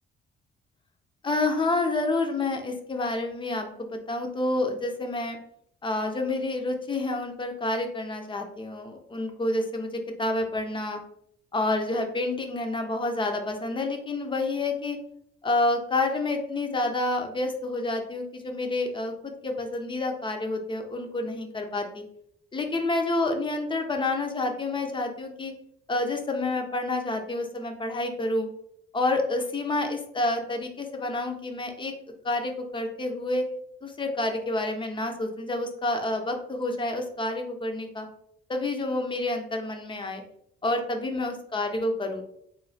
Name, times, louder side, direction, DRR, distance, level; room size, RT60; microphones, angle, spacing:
voice 1, 1.2-5.4 5.8-11.0 11.5-15.0 15.4-22.0 22.5-25.5 25.9-28.5 28.9-31.9 32.2-33.5 33.8-38.1 38.5-40.2 40.6-42.2, left 2 dB, 25° left, 4 dB, 0.5 m, -28 dB
3.1 x 2.2 x 2.6 m, 0.71 s
cardioid pair, 90°, 20 cm